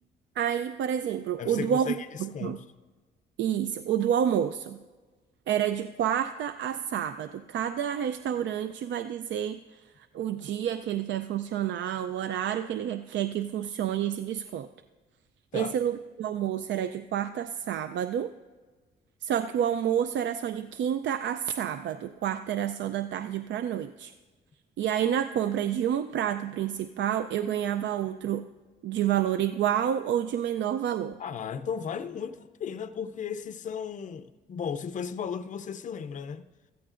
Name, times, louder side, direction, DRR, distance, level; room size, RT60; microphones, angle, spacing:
voice 1, 0.4-1.9 2.2-2.6 3.4-4.8 5.5-9.8 10.1-14.7 15.5-18.3 19.2-24.1 24.8-28.4 28.8-31.2, right 9 dB, 65° right, 0.4 m, -29 dB
voice 2, 1.4-2.6 15.5-15.8 31.2-36.5, left 7 dB, 40° left, 0.5 m, -35 dB
15.5 x 14.0 x 2.5 m
cardioid pair, 90°, 20 cm